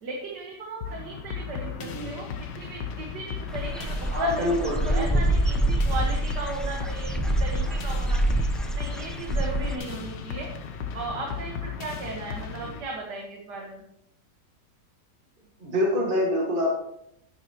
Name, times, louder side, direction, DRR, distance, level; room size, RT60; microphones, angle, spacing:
voice 1, 0.0-4.5 4.8-8.4 8.7-10.5 10.9-13.8, right 3 dB, 70° right, -1 dB, 2.1 m, -36 dB
sound 1, 0.8-12.8, left 6 dB, 80° left, 1.6 m, -36 dB
voice 2, 1.8-2.1 4.1-5.2 12.6-12.7 15.6-16.7, left 1 dB, 30° right, -2 dB, 2.1 m, -26 dB
Dog / Bird, 3.5-9.8, right 1 dB, ahead, 0.4 m, -26 dB
11.0 x 10.5 x 3.1 m, 0.75 s
omnidirectional pair, 1.9 m